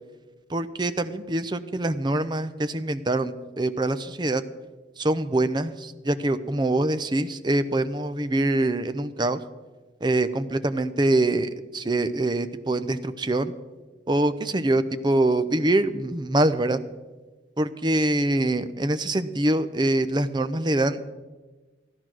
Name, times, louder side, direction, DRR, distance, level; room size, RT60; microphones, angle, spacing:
voice 1, 0.5-4.4 5.0-9.4 10.0-13.5 14.1-16.8 17.6-21.0, right 1 dB, 25° right, 11 dB, 0.6 m, -24 dB
15.0 x 10.5 x 6.2 m, 1.3 s
head